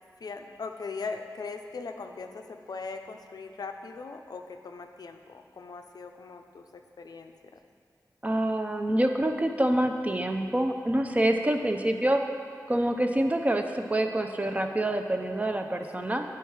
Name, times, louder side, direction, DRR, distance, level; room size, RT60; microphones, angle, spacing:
voice 1, 0.2-7.6 11.6-11.8 16.0-16.2, left 4 dB, 70° left, 5 dB, 0.4 m, -40 dB
voice 2, 8.2-12.2 12.7-16.2, right 1 dB, 20° right, 5 dB, 0.5 m, -26 dB
8.7 x 4.6 x 4.7 m, 2.2 s
wide cardioid pair, 85°, 7 cm